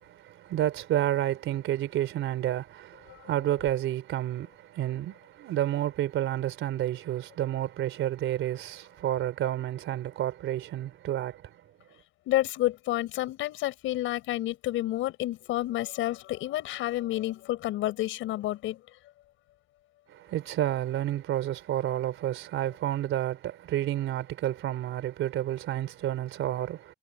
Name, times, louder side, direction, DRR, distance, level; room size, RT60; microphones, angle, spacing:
voice 1, 0.0-11.6 20.1-26.9, right 12 dB, 80° right, 3.8 m, -30 dB
voice 2, 12.3-18.8, left 15 dB, 90° left, 6.4 m, -30 dB
cardioid pair, 90°, 20 cm